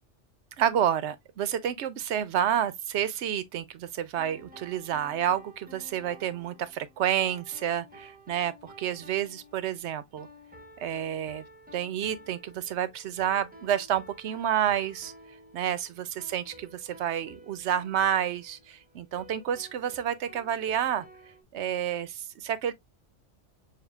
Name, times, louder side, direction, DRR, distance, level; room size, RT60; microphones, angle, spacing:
voice 1, 0.6-10.3 10.8-11.4 11.7-15.1 15.5-21.1 21.5-22.7, right 10 dB, 70° right, 0.8 m, -29 dB
sound 1, 4.2-21.4, equal, 10° right, 0.6 m, -52 dB
6.7 x 2.3 x 2.3 m
omnidirectional pair, 1.2 m